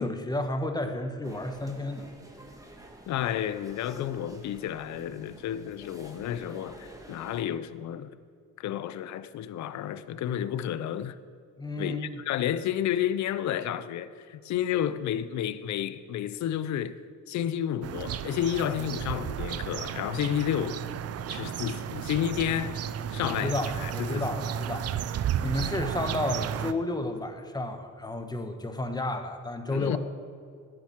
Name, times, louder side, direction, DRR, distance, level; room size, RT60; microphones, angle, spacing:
voice 1, 0.0-2.0 11.6-12.2 23.2-24.9 25.4-30.0, left 2 dB, 15° left, 1.1 m, -32 dB
sound 1, 1.2-7.4, right 1 dB, 10° right, 1.6 m, -49 dB
voice 2, 3.1-8.2 8.6-11.2 11.8-16.9 17.3-20.8 21.3-22.8 23.1-24.4 29.7-30.0, left 10 dB, 70° left, 0.6 m, -31 dB
sound 2, 17.8-26.7, right 9 dB, 55° right, 0.5 m, -33 dB
10.5 x 7.6 x 7.2 m
cardioid pair, 90°, 30 cm